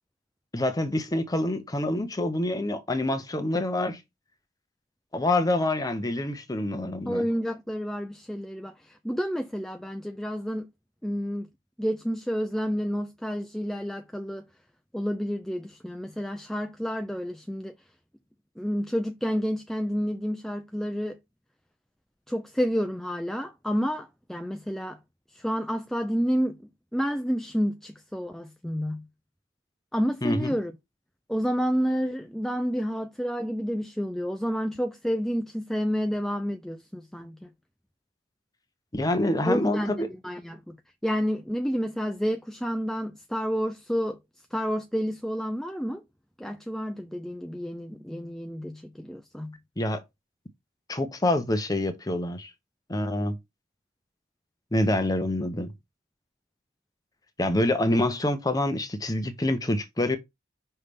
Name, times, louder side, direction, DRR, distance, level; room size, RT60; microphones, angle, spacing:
voice 1, 0.5-4.0 5.1-7.2 30.2-30.6 38.9-40.1 49.8-50.0 50.9-52.5 52.9-53.4 54.7-55.7 57.4-60.2, left 1 dB, 20° left, 0.8 m, -26 dB
voice 2, 7.1-10.7 11.0-11.5 11.8-14.4 14.9-17.7 18.6-21.2 22.3-25.0 25.3-26.6 26.9-29.0 29.9-30.7 31.3-37.5 39.4-39.9 40.2-40.8 41.0-44.2 44.5-46.0 46.4-49.6, equal, ahead, 0.3 m, -29 dB
5.5 x 3.4 x 5.1 m
head